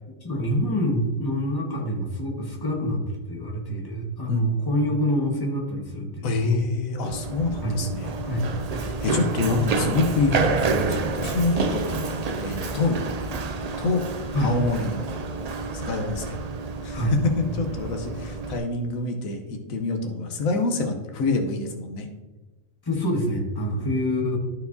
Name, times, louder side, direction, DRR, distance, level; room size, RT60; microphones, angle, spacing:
voice 1, 0.2-3.0 3.3-6.6 7.6-7.8 8.2-8.5 14.3-14.5 16.9-17.1 22.9-24.4, equal, 15° left, -2 dB, 1.4 m, -26 dB
voice 2, 6.2-8.1 8.8-13.2 13.8-14.0 14.4-15.1 15.7-16.4 16.8-22.1 23.8-23.9, left 3 dB, 80° left, 4 dB, 1.3 m, -26 dB
Run, 7.0-18.6, right 4 dB, 75° right, 0.3 m, -29 dB
13.0 x 4.6 x 2.7 m, 1.2 s
omnidirectional pair, 1.4 m